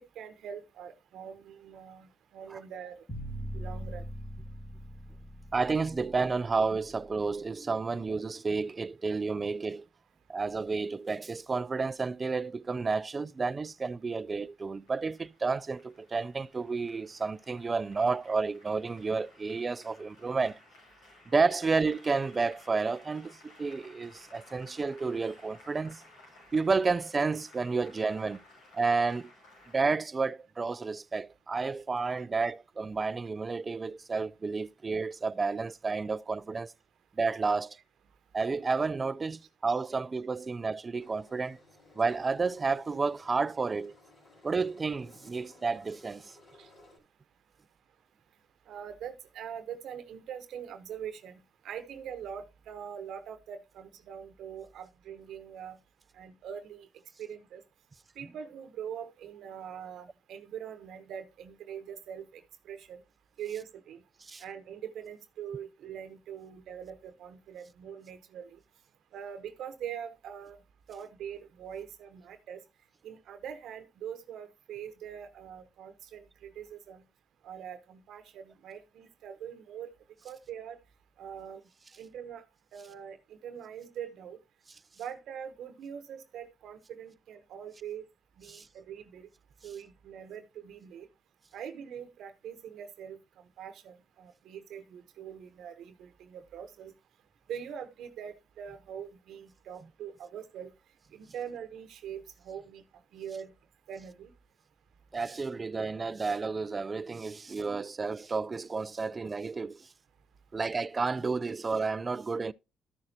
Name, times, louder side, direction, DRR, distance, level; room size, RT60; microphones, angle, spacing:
voice 1, 0.0-3.1 3.5-4.0 32.2-32.3 46.6-46.7 48.7-51.4 51.6-55.8 56.1-56.9 57.2-57.6 58.2-62.4 62.7-63.0 63.4-64.0 64.4-68.6 69.1-70.6 70.9-72.6 73.0-77.0 77.4-79.9 80.2-80.8 81.2-81.6 82.0-82.4 82.7-84.4 85.0-88.0 88.4-89.3 89.6-91.1 91.5-93.2 93.6-96.9 97.5-100.7 101.1-102.8 103.1-103.5 103.9-104.3, right 8 dB, 75° right, 1.0 m, -43 dB
sound 1, 3.1-7.2, equal, 25° left, 2.4 m, -41 dB
voice 2, 5.5-9.9 10.3-20.6 21.3-26.0 26.5-28.4 28.7-29.3 29.7-36.7 37.2-37.8 38.3-41.6 42.0-43.9 44.4-46.4 64.3-64.4 88.5-88.7 105.1-109.9 110.5-112.5, right 4 dB, 30° right, 0.4 m, -31 dB
Applause, 14.5-29.9, left 2 dB, 85° left, 6.1 m, -57 dB
Engine, 41.0-47.0, left 2 dB, 45° left, 4.2 m, -59 dB
13.5 x 6.4 x 2.8 m
cardioid pair, 90°, 0 cm